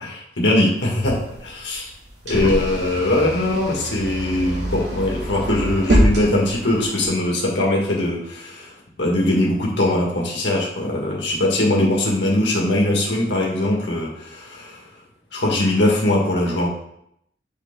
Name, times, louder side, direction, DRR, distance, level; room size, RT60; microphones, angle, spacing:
voice 1, 0.4-1.9 2.2-8.7 9.0-14.8 15.3-16.7, left 1 dB, 80° left, -2 dB, 1.8 m, -21 dB
sound 1, 0.8-7.1, equal, 75° right, 2.3 m, -25 dB
8.0 x 5.0 x 3.6 m, 0.75 s
head